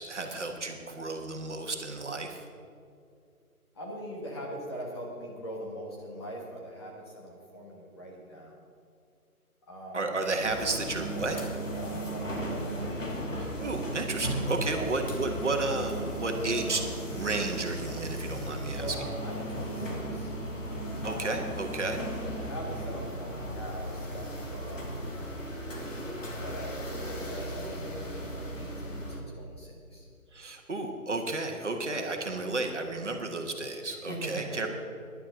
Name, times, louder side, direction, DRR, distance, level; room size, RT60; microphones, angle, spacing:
voice 1, 0.0-2.4 9.9-11.4 13.3-16.8 17.1-19.0 21.0-22.0 30.3-34.7, right 3 dB, 50° right, 3 dB, 1.6 m, -32 dB
voice 2, 3.7-8.6 9.7-10.2 11.7-12.9 14.7-14.9 18.7-20.3 21.0-21.6 22.2-24.9 25.6-30.1 31.8-32.1 33.8-34.6, equal, 20° left, -3 dB, 1.4 m, -42 dB
sound 1, 10.4-29.2, right 1 dB, 55° left, 2.8 m, -36 dB
16.5 x 11.0 x 3.9 m, 2.4 s
figure-of-eight pair, 155°, 44 cm